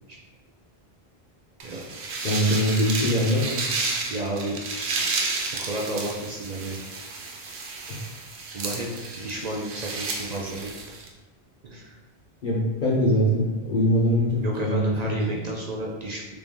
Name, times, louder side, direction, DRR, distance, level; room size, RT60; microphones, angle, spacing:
sound 1, 1.6-11.1, right 3 dB, 80° right, 0.9 m, -32 dB
voice 1, 2.2-3.7 7.9-8.0 12.4-15.4, equal, 50° left, -8 dB, 0.9 m, -23 dB
voice 2, 4.1-5.1 5.6-6.8 8.5-8.9 9.2-10.7 11.6-12.0 14.4-16.2, right 1 dB, 55° right, -2 dB, 0.5 m, -32 dB
3.4 x 2.6 x 3.6 m, 1.2 s
omnidirectional pair, 1.1 m